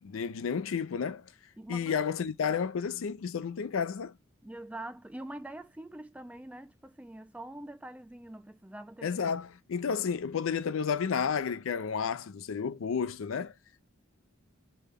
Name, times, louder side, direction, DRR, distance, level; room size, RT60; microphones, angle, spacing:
voice 1, 0.0-1.2 1.7-4.1 9.0-13.5, left 6 dB, 75° left, 0.4 m, -31 dB
voice 2, 1.6-2.0 4.4-9.3, right 1 dB, 5° right, 0.3 m, -44 dB
3.3 x 2.2 x 3.4 m
head